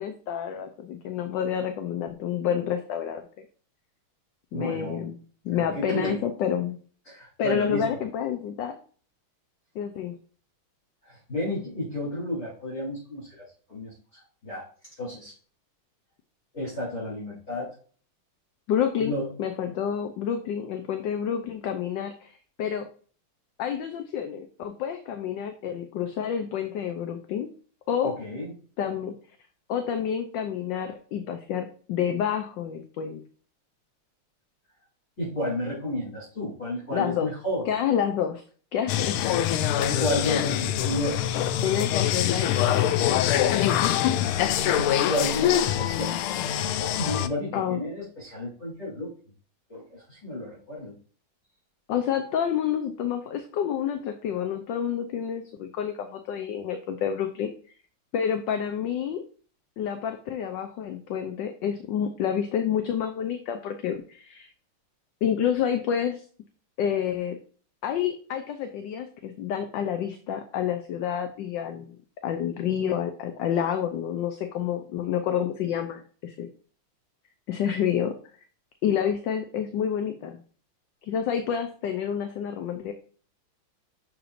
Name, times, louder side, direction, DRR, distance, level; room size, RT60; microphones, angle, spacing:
voice 1, 0.0-3.2 4.5-5.2 5.4-6.8 7.4-8.8 9.7-10.2 18.7-22.3 22.6-22.9 23.6-27.5 27.9-28.1 28.8-29.1 29.7-33.2 36.9-37.3 37.7-38.4 38.7-39.2 40.3-40.7 41.6-44.3 47.5-47.8 51.9-57.5 58.1-59.2 59.8-64.5 65.2-66.2 66.8-67.4 67.8-72.0 72.2-76.5 77.5-78.1 78.8-80.3 81.0-82.9, left 8 dB, 70° left, 6 dB, 1.3 m, -29 dB
voice 2, 4.5-5.1 5.5-6.2 7.1-8.0 11.0-14.6 15.0-15.3 16.5-17.7 19.0-19.3 28.0-28.5 35.2-37.7 40.0-41.2 44.7-46.2 46.8-49.1 49.7-50.9, left 1 dB, 30° left, -7 dB, 3.7 m, -32 dB
sound 1, 38.9-47.3, left 11 dB, 90° left, 1.5 m, -24 dB
6.6 x 5.9 x 2.5 m, 0.42 s
omnidirectional pair, 2.3 m